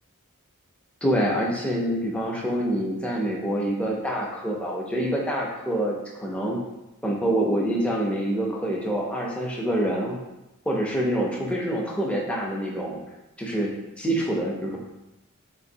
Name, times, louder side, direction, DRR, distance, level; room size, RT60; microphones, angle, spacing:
voice 1, 1.0-6.0 6.2-6.6 7.0-10.2 10.7-13.0 13.4-14.8, right 1 dB, 5° left, -2 dB, 0.4 m, -26 dB
3.8 x 2.7 x 2.6 m, 0.95 s
head